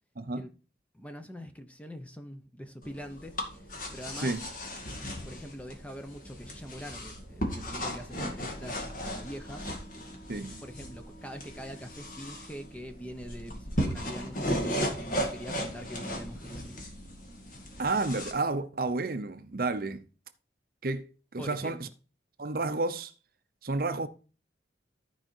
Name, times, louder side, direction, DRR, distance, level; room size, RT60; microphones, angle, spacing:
voice 1, 0.9-3.4 3.9-4.4 5.2-9.7 10.6-16.8 21.4-21.9, equal, 5° left, 0.8 m, -43 dB
sound 1, 2.8-18.3, equal, 45° left, 2.2 m, -36 dB
Wind instrument woodwind instrument, 8.1-13.0, right 2 dB, 65° left, 3.1 m, -54 dB
voice 2, 10.3-10.6 17.8-20.0 20.8-21.1 21.3-21.9 22.4-23.1 23.6-24.1, right 3 dB, 50° right, 0.7 m, -31 dB
13.5 x 5.0 x 4.5 m
head